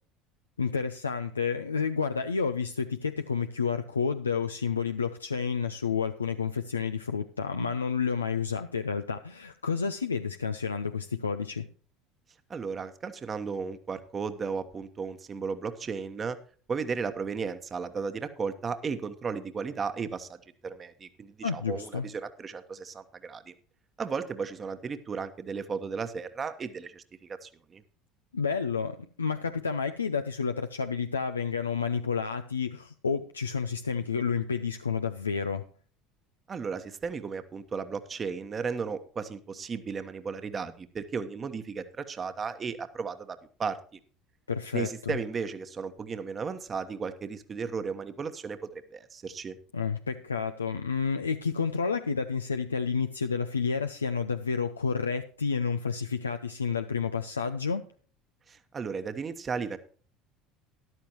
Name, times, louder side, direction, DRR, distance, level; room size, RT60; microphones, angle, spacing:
voice 1, 0.6-11.7 21.4-22.1 28.3-35.6 44.5-45.1 49.7-57.8, left 5 dB, 90° left, 7 dB, 0.5 m, -30 dB
voice 2, 12.5-16.4 16.7-23.5 24.0-27.8 36.5-43.8 44.7-49.6 58.5-59.8, right 5 dB, 30° right, 9 dB, 1.2 m, -35 dB
13.5 x 11.5 x 3.1 m, 0.42 s
figure-of-eight pair, 65°, 0 cm